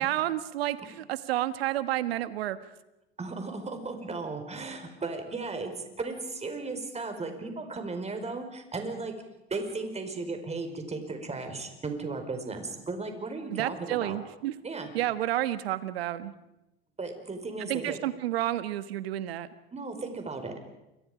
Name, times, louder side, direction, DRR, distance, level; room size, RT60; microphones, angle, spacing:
voice 1, 0.0-2.6 13.5-14.5 14.9-16.3 17.7-19.5, right 14 dB, 75° right, 13 dB, 1.5 m, -30 dB
voice 2, 3.2-9.1 9.5-14.2 14.6-14.9 17.0-18.0 19.7-20.5, right 3 dB, 20° right, 6 dB, 5.0 m, -35 dB
29.0 x 24.5 x 5.1 m, 0.93 s
hypercardioid pair, 80°, 31 cm